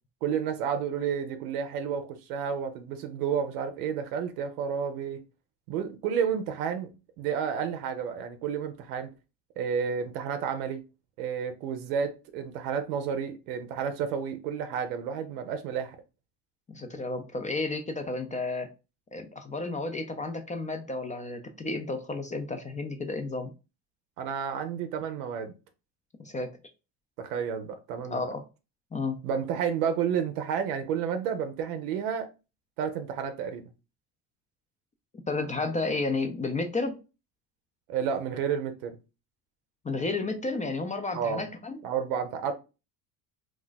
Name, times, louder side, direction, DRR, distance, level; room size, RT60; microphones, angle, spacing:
voice 1, 0.2-5.2 5.7-6.9 7.2-9.1 9.6-10.8 11.2-16.0 24.2-25.5 27.2-28.3 29.2-32.3 32.8-33.6 37.9-38.9 41.1-41.4 41.8-42.5, right 7 dB, 85° right, 0.6 m, -31 dB
voice 2, 16.7-18.7 19.1-23.5 26.2-26.5 28.1-28.4 28.9-29.2 35.3-37.0 39.8-41.8, left 3 dB, 20° left, 0.4 m, -32 dB
2.4 x 2.3 x 3.9 m
supercardioid pair, 80°, 44 cm